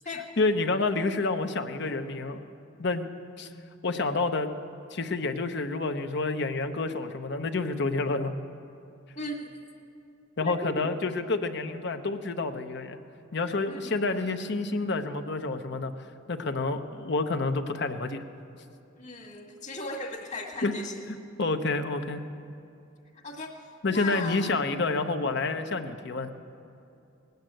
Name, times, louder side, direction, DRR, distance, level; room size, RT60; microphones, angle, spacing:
voice 1, 0.4-2.4 2.8-3.1 3.4-3.5 3.8-4.5 4.9-8.3 10.4-13.0 13.3-15.9 16.3-18.2 20.6-20.7 21.4-22.2 23.8-26.3, left 3 dB, 60° left, 8 dB, 0.8 m, -28 dB
voice 2, 9.2-9.5 10.4-11.0 13.7-14.0 19.0-21.0 23.2-24.5 24.7-24.8, left 2 dB, 40° left, 2 dB, 1.6 m, -37 dB
18.5 x 8.1 x 9.1 m, 2.7 s
head